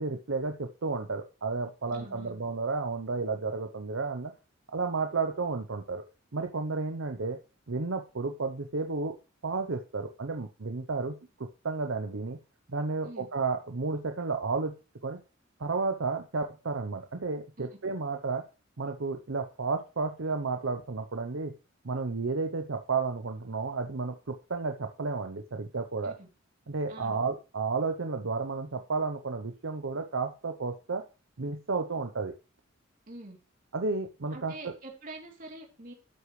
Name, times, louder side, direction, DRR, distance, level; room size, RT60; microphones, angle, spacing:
voice 1, 0.0-4.3 4.7-6.0 6.3-7.4 7.7-9.1 9.4-12.4 12.7-14.7 15.0-15.2 15.6-18.4 18.8-21.5 21.8-26.1 26.7-31.0 31.4-32.3 33.7-34.7, right 4 dB, 70° right, 5 dB, 0.8 m, -32 dB
voice 2, 1.9-2.4 13.0-13.3 17.6-17.7 26.0-26.3 26.9-27.2 33.1-33.4 34.3-35.9, right 2 dB, 40° right, 0 dB, 3.1 m, -45 dB
12.5 x 8.3 x 3.2 m, 0.32 s
head